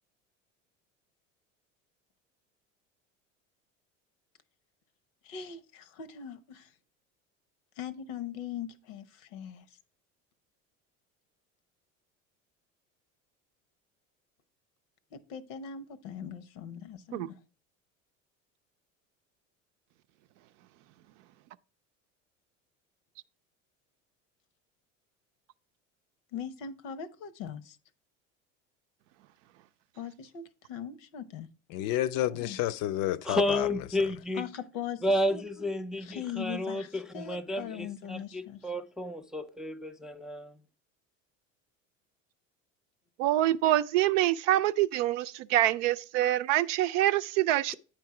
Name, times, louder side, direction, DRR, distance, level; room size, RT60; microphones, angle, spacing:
voice 1, 5.2-6.7 7.8-9.6 15.1-17.4 26.3-27.8 30.0-31.5 32.3-32.6 34.3-35.4 36.0-38.6, left 8 dB, 75° left, 0.9 m, -40 dB
voice 2, 31.7-33.7, left 13 dB, 55° left, 0.5 m, -30 dB
voice 3, 33.2-34.5 35.0-40.5, left 1 dB, ahead, 0.4 m, -31 dB
voice 4, 43.2-47.8, right 14 dB, 70° right, 0.6 m, -25 dB
9.0 x 4.6 x 4.7 m
hypercardioid pair, 75°, 39 cm